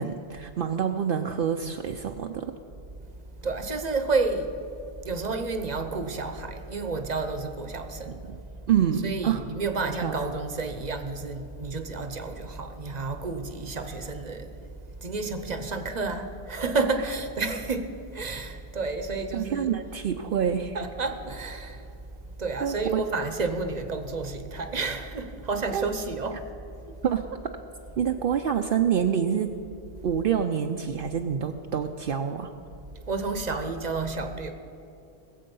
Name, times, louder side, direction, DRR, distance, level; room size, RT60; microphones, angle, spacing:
voice 1, 0.0-2.5 8.1-8.4 8.7-9.4 9.8-10.2 19.3-20.8 22.6-23.0 25.7-25.9 27.0-27.3 28.0-29.5 30.0-32.5, right 8 dB, 65° right, 5 dB, 0.8 m, -27 dB
voice 2, 3.4-8.3 9.0-14.6 14.9-19.7 20.7-21.9 22.4-26.5 26.8-26.9 33.1-34.5, right 3 dB, 45° right, 8 dB, 0.9 m, -30 dB
20.5 x 7.7 x 5.4 m, 2.7 s
omnidirectional pair, 1.0 m